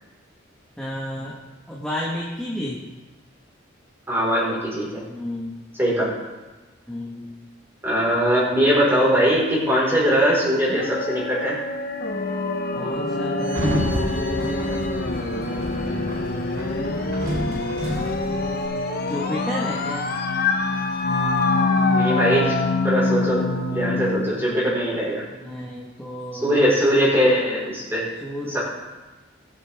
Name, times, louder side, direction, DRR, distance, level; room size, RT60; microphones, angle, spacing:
voice 1, 0.8-1.4 1.7-2.8 5.1-5.5 6.9-7.3 12.7-16.1 17.3-18.2 19.0-20.1 25.3-26.6 28.2-28.6, left 1 dB, 5° left, -6 dB, 1.5 m, -33 dB
voice 2, 4.1-5.0 5.8-6.1 7.8-11.6 21.9-22.6 22.8-25.2 26.4-28.0 28.5-28.6, equal, 10° right, -6 dB, 4.7 m, -21 dB
sound 1, 10.7-24.3, left 3 dB, 50° left, 1.1 m, -25 dB
Sliding door, 13.4-18.6, equal, 85° right, 3.4 m, -30 dB
21.0 x 8.8 x 3.6 m, 1.2 s
head